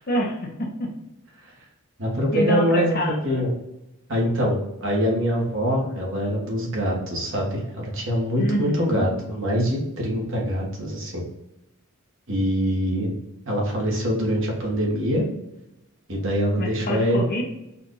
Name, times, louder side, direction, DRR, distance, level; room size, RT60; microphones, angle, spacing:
voice 1, 0.1-0.9 2.3-3.4 8.4-9.1 16.6-17.4, equal, 45° left, 1 dB, 1.0 m, -27 dB
voice 2, 2.0-3.5 4.1-11.2 12.3-13.1 13.4-15.2 16.1-17.2, equal, 65° right, -2 dB, 1.5 m, -24 dB
4.3 x 2.6 x 3.8 m, 0.89 s
head